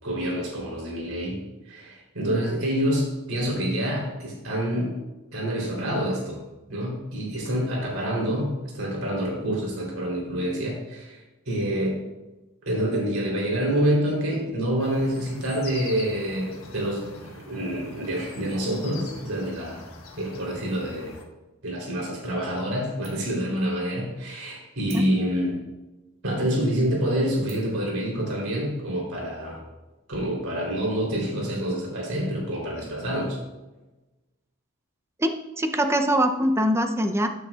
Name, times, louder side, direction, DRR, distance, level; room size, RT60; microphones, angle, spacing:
voice 1, 0.0-5.0 5.3-6.4 6.7-12.0 12.7-17.1 17.3-19.8 20.2-21.1 21.6-25.6 26.2-29.6 30.1-33.4, equal, 80° right, -3 dB, 3.7 m, -27 dB
sound 1, 14.8-21.2, left 3 dB, 65° left, 1.5 m, -44 dB
sound 2, 22.4-22.8 23.0-23.4 23.8-23.9 24.8-25.5 26.2-26.3 26.8-27.0 27.5-27.9, right 4 dB, 40° right, 2.9 m, -49 dB
voice 2, 35.2-37.3, equal, 10° right, 5 dB, 0.7 m, -23 dB
13.0 x 9.3 x 2.5 m, 1.1 s
head